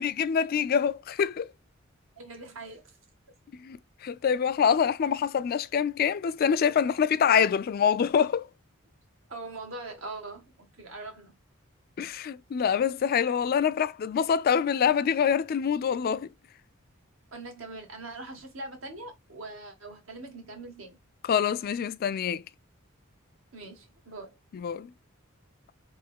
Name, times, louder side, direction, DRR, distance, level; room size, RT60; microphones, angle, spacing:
voice 1, 0.0-1.5 3.6-8.5 12.0-16.3 21.3-22.4 24.5-24.9, left 7 dB, 45° left, 0.3 m, -25 dB
voice 2, 2.2-2.9 9.3-11.3 17.3-21.0 23.5-24.4, right 2 dB, 75° right, 1.5 m, -42 dB
3.5 x 3.0 x 3.4 m
head